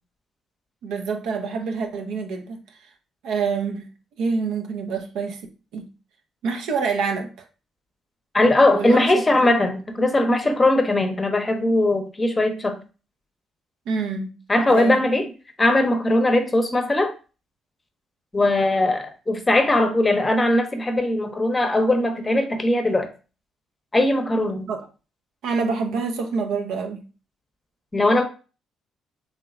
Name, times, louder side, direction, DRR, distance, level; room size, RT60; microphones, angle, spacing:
voice 1, 0.8-2.6 3.2-3.9 4.2-5.4 5.7-5.9 6.4-7.3 8.8-9.1 9.4-9.5 13.9-14.3 14.7-15.0 24.7-24.8 25.4-27.0, right 5 dB, 80° right, 0.5 m, -26 dB
voice 2, 8.3-12.8 14.5-15.3 15.6-17.1 18.3-23.1 23.9-24.7 27.9-28.2, left 1 dB, 25° left, 0.7 m, -20 dB
3.1 x 2.9 x 2.4 m
supercardioid pair, 60°, 0 cm